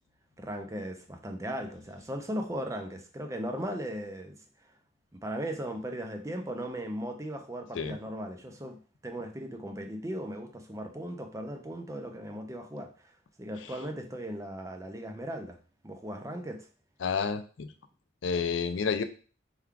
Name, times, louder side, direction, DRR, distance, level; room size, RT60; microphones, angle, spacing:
voice 1, 0.4-4.4 4.6-4.7 5.2-13.1 13.4-15.6 15.8-16.7, equal, 15° right, 4 dB, 0.5 m, -37 dB
voice 2, 17.0-17.7 18.2-19.0, left 5 dB, 80° left, 10 dB, 0.4 m, -29 dB
3.7 x 2.3 x 4.5 m, 0.38 s
head